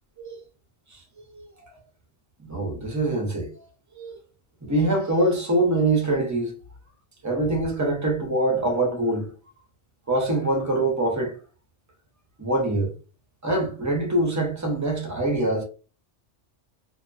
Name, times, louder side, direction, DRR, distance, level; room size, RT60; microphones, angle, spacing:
voice 1, 2.4-3.7 3.9-4.1 4.6-6.5 7.2-9.3 10.1-11.3 12.4-12.9 13.4-15.6, right 2 dB, 20° right, 0.5 m, -24 dB
2.7 x 2.1 x 2.5 m
omnidirectional pair, 1.2 m